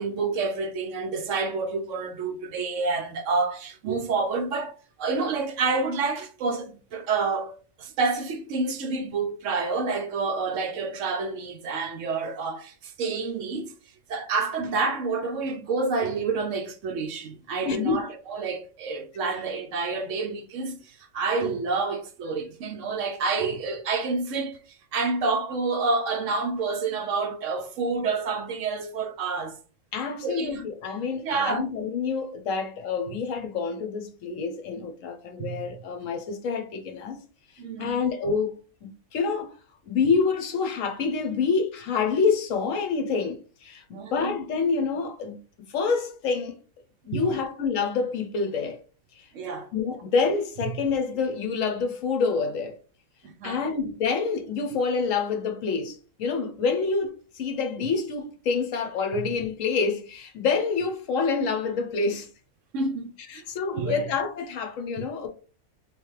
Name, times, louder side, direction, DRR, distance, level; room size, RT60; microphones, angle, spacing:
voice 1, 0.0-4.7 5.0-13.7 14.1-29.6 30.2-30.6 31.2-31.7 34.3-34.4 35.4-35.7 37.6-38.0 43.9-44.3 47.1-47.4 49.3-49.7 50.6-50.7 53.2-53.7 59.1-59.3 62.7-63.1 63.7-64.1, right 4 dB, 70° right, 0.9 m, -28 dB
voice 2, 17.7-18.0 29.9-37.2 37.8-39.5 39.9-43.8 44.1-45.4 45.7-46.5 47.1-48.8 49.2-49.3 49.7-52.8 53.4-62.3 63.3-65.3, left 5 dB, 70° left, 1.1 m, -27 dB
3.4 x 3.2 x 3.2 m
omnidirectional pair, 1.4 m